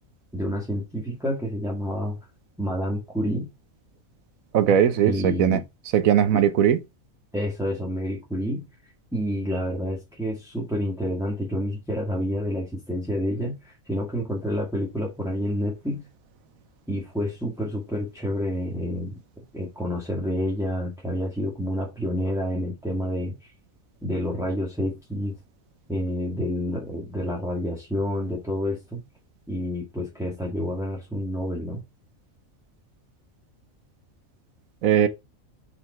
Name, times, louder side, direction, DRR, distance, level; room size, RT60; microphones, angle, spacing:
voice 1, 0.3-2.2 2.6-3.5 4.7-4.8 5.0-5.6 6.3-6.4 7.3-16.1 16.9-19.2 19.5-23.5 24.0-25.3 25.9-29.0 29.5-31.8, equal, ahead, 2.2 m, -29 dB
voice 2, 4.5-5.6 5.9-6.8 34.8-35.1, right 9 dB, 80° right, 1.2 m, -19 dB
5.6 x 5.6 x 4.4 m
omnidirectional pair, 1.4 m